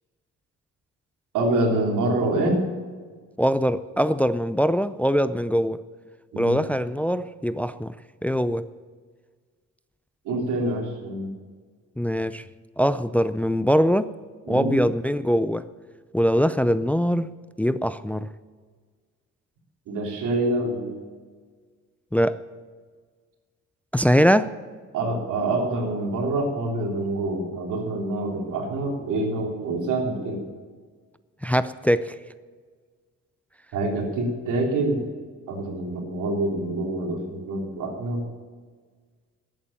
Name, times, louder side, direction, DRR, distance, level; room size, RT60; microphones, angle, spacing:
voice 1, 1.3-2.6 6.3-6.6 10.2-11.3 14.5-14.8 19.9-20.9 24.9-30.4 33.7-35.0 35.5-38.2, right 2 dB, 90° right, 3.3 m, -26 dB
voice 2, 3.4-5.8 6.4-7.9 8.2-8.7 12.0-12.4 12.8-14.1 14.5-15.7 16.1-17.3 17.6-18.3 22.1-22.4 23.9-24.5 31.4-32.1, equal, 5° left, 0.4 m, -22 dB
13.5 x 8.9 x 8.8 m
cardioid pair, 90°, 30 cm